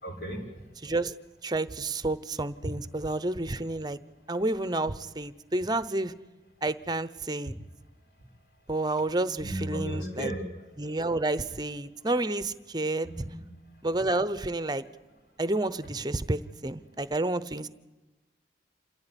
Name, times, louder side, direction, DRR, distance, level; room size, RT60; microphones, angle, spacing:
voice 1, 0.0-0.4 9.4-10.4 13.0-13.4, right 1 dB, 60° left, 2 dB, 5.3 m, -34 dB
voice 2, 0.8-1.2 1.4-4.0 4.3-6.1 6.6-7.5 8.7-10.3 10.8-13.1 13.8-14.8 15.4-17.7, right 2 dB, 25° right, 14 dB, 0.8 m, -30 dB
28.0 x 15.5 x 9.9 m, 1.1 s
head